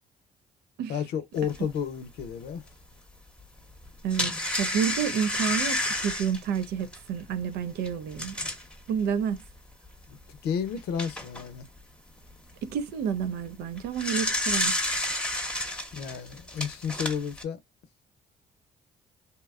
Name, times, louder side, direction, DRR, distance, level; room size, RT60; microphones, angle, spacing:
voice 1, 0.9-2.7 10.1-11.7 15.9-17.6, left 7 dB, 80° left, 0.6 m, -32 dB
sound 1, 1.5-1.6 2.2-2.3 3.8-8.7 9.4-9.5 9.9-10.0 10.6-11.5 13.6-17.4, left 1 dB, 5° left, 0.8 m, -30 dB
voice 2, 4.6-8.5 8.9-9.4 12.6-14.8, right 7 dB, 80° right, 0.5 m, -29 dB
2.8 x 2.2 x 2.3 m
supercardioid pair, 65°, 17 cm